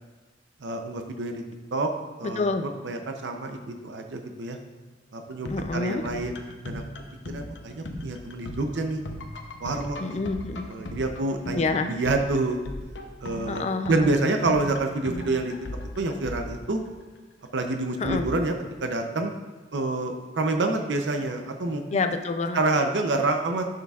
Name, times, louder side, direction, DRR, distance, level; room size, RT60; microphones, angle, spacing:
voice 1, 0.6-1.4 1.7-1.9 2.2-4.6 5.1-6.8 7.2-9.0 9.6-10.2 10.7-12.6 13.2-15.5 16.0-16.8 17.5-18.5 18.8-19.4 19.7-21.8 22.5-23.7, right 2 dB, 70° right, 5 dB, 0.6 m, -27 dB
voice 2, 2.2-2.7 5.5-6.0 10.0-10.7 11.5-12.0 13.5-14.2 18.0-18.3 21.9-22.6, left 3 dB, 35° left, 8 dB, 0.4 m, -27 dB
sound 1, 5.3-17.2 18.0-18.7, left 1 dB, 70° left, 0.7 m, -38 dB
10.5 x 6.5 x 2.4 m, 1.3 s
head